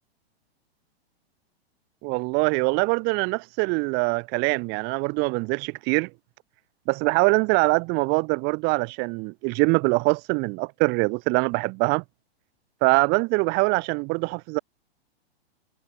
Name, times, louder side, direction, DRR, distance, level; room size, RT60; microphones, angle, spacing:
voice 1, 2.0-6.1 6.9-12.0 12.8-14.6, right 30 dB, 30° right, 0.8 m, -23 dB
hypercardioid pair, 130°, 32 cm